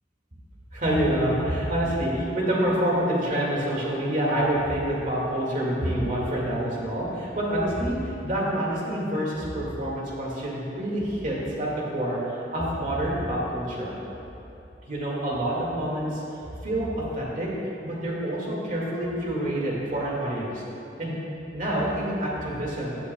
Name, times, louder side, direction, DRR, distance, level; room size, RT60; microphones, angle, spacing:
voice 1, 0.7-12.2 12.5-13.9 14.9-16.2 16.6-16.9 17.1-17.5 17.8-20.6 21.0-21.2 21.5-23.0, right 1 dB, 45° right, -4 dB, 2.0 m, -27 dB
15.5 x 8.3 x 2.3 m, 2.9 s
head